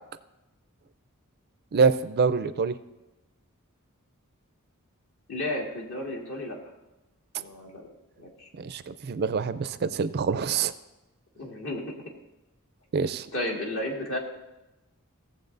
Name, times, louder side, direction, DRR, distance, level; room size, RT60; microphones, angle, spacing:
voice 1, 1.7-2.8 8.6-10.7 12.9-13.3, right 5 dB, 50° right, 13 dB, 0.4 m, -25 dB
voice 2, 5.3-6.6 7.4-7.9 8.2-8.5 11.4-11.8 13.3-14.2, left 1 dB, 65° left, -1 dB, 1.9 m, -33 dB
16.5 x 7.5 x 2.6 m, 0.99 s
head